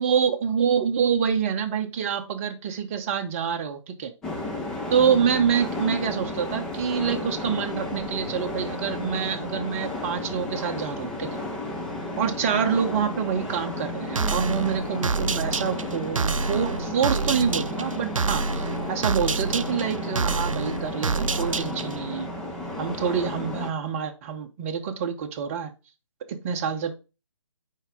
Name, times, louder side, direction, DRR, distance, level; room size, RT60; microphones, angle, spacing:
voice 1, 0.0-4.1 4.9-11.4 12.2-22.3 22.8-25.7 26.3-26.9, right 7 dB, 25° right, 5 dB, 0.8 m, -26 dB
sound 1, 4.2-23.7, left 2 dB, 5° left, 0.3 m, -33 dB
sound 2, 14.2-22.0, right 4 dB, 85° right, 0.4 m, -28 dB
5.6 x 4.6 x 3.6 m, 0.30 s
figure-of-eight pair, 145°, 17 cm